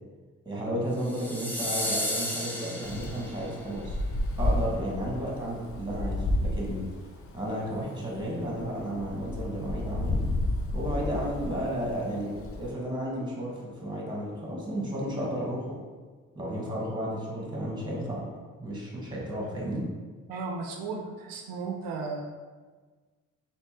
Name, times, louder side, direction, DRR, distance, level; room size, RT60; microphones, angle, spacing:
voice 1, 0.4-4.0 4.4-6.9 7.3-10.2 10.7-12.3 12.6-15.8 16.3-18.2 18.6-19.9, equal, 15° right, -4 dB, 1.4 m, -33 dB
sound 1, 1.0-3.5, left 1 dB, 5° left, 0.8 m, -33 dB
Wind, 2.8-12.7, left 1 dB, 40° left, 0.5 m, -32 dB
voice 2, 20.3-22.3, right 4 dB, 80° right, 2 dB, 0.5 m, -35 dB
3.4 x 2.8 x 2.9 m, 1.4 s
supercardioid pair, 55°, 34 cm